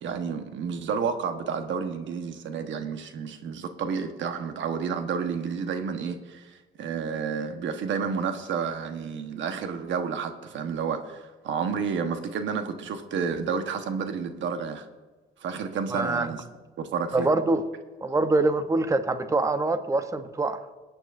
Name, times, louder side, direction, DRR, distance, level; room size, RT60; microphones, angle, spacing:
voice 1, 0.0-6.5 6.8-14.9 15.4-16.4 16.8-17.3, right 6 dB, 70° right, 7 dB, 1.2 m, -30 dB
voice 2, 15.9-16.3 17.1-17.6 18.0-20.6, right 2 dB, 15° right, 9 dB, 0.8 m, -24 dB
21.5 x 9.1 x 2.6 m, 1.3 s
cardioid pair, 90°, 20 cm